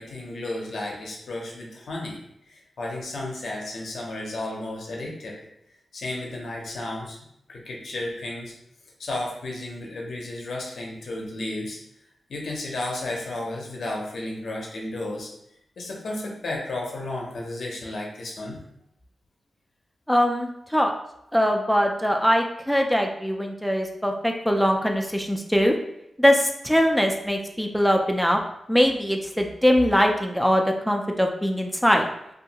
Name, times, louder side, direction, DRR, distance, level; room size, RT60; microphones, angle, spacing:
voice 1, 0.0-2.2 2.5-5.4 5.9-7.2 7.5-8.5 9.0-11.8 12.3-15.3 15.8-18.6, left 2 dB, 75° left, -1 dB, 0.5 m, -33 dB
voice 2, 20.1-20.9 21.3-25.7 26.2-28.4 28.7-32.1, equal, ahead, 2 dB, 0.3 m, -22 dB
2.5 x 2.3 x 2.8 m, 0.78 s
cardioid pair, 70°, 0 cm